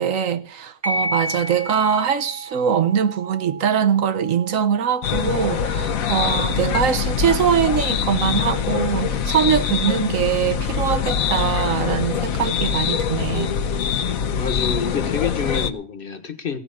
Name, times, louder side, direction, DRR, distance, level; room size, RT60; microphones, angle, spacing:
voice 1, 0.0-13.5, right 8 dB, 65° right, 1.3 m, -22 dB
sound 1, 0.8-9.8, right 1 dB, 30° right, 1.2 m, -34 dB
sound 2, 5.0-15.7, left 7 dB, 70° left, 1.2 m, -23 dB
voice 2, 14.3-16.6, left 5 dB, 40° left, 1.3 m, -28 dB
16.0 x 6.1 x 8.5 m
omnidirectional pair, 1.6 m